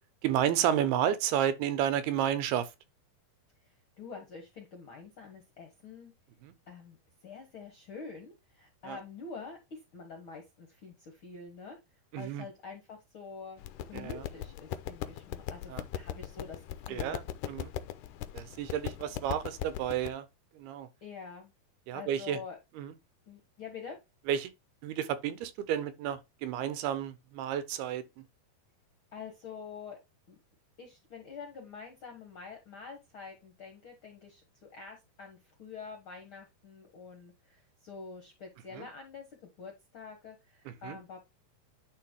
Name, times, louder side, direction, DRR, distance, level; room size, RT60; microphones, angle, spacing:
voice 1, 0.2-2.7 6.4-6.5 8.8-9.0 12.1-12.5 13.9-14.2 15.7-15.8 16.9-17.7 18.3-20.3 20.6-20.9 21.9-22.4 22.8-22.9 24.3-24.5 24.8-28.0 38.8-38.9 40.8-41.0, right 10 dB, 85° right, 2.8 m, -31 dB
voice 2, 4.0-6.1 6.7-7.0 7.2-11.8 12.2-13.6 13.9-16.6 16.9-17.1 21.0-21.5 21.9-22.6 23.3-24.0 29.1-30.0 30.3-30.4 30.8-41.2, left 5 dB, 60° left, 1.3 m, -46 dB
sound 1, 13.6-20.1, left 11 dB, 85° left, 1.9 m, -39 dB
10.5 x 3.7 x 4.5 m
omnidirectional pair, 4.4 m